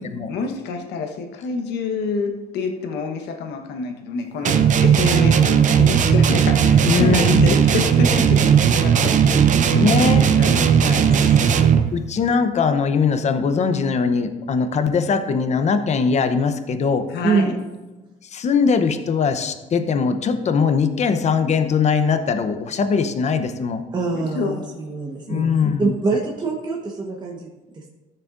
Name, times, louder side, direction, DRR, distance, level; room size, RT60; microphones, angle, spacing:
voice 1, 0.3-9.5 9.9-11.7 17.1-17.6 24.1-24.6, left 4 dB, 80° left, 4 dB, 1.2 m, -28 dB
sound 1, 4.5-12.0, right 7 dB, 50° right, 0.7 m, -16 dB
voice 2, 6.9-7.5 9.7-10.3 11.9-17.1 18.2-23.8 25.3-26.0, left 5 dB, 40° left, 9 dB, 0.8 m, -21 dB
voice 3, 9.8-10.7 17.2-17.6 23.9-25.4 25.8-27.9, right 4 dB, 25° right, -1 dB, 1.2 m, -25 dB
13.5 x 6.6 x 2.6 m, 1.1 s
cardioid pair, 110°, 17 cm